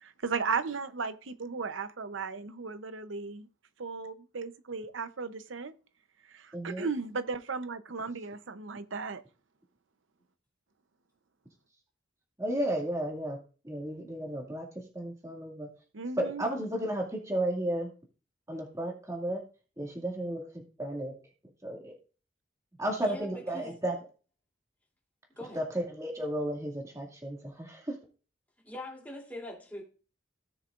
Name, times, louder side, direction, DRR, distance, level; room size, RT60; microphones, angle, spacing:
voice 1, 0.0-3.5 3.8-5.7 6.3-9.2 15.9-16.4, right 4 dB, 85° right, 0.8 m, -35 dB
voice 2, 6.5-6.9 12.4-13.4 13.6-14.6 14.9-15.7 16.2-17.9 18.5-19.4 19.8-20.4 20.8-21.1 21.6-21.9 22.8-23.9 25.5-27.9, right 1 dB, 15° right, 2.2 m, -33 dB
voice 3, 23.0-23.7 25.4-25.6 28.6-29.8, left 1 dB, 10° left, 3.0 m, -42 dB
17.0 x 6.7 x 2.5 m
head